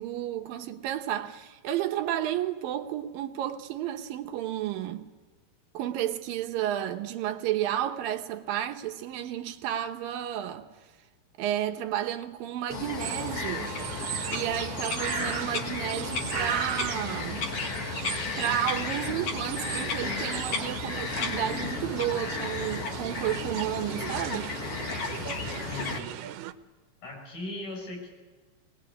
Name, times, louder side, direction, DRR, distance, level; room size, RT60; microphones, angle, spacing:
voice 1, 0.0-5.1 5.7-10.7 11.4-13.8 14.3-17.5 18.4-24.6, right 11 dB, 75° right, 2.5 m, -32 dB
Bird vocalization bird call bird song, 12.7-26.0, left 5 dB, 50° left, 2.2 m, -33 dB
sound 1, 13.0-26.5, right 13 dB, 90° right, 2.8 m, -37 dB
voice 2, 25.7-26.1 27.0-28.2, left 2 dB, 70° left, 7.8 m, -38 dB
21.5 x 20.5 x 8.3 m
omnidirectional pair, 4.4 m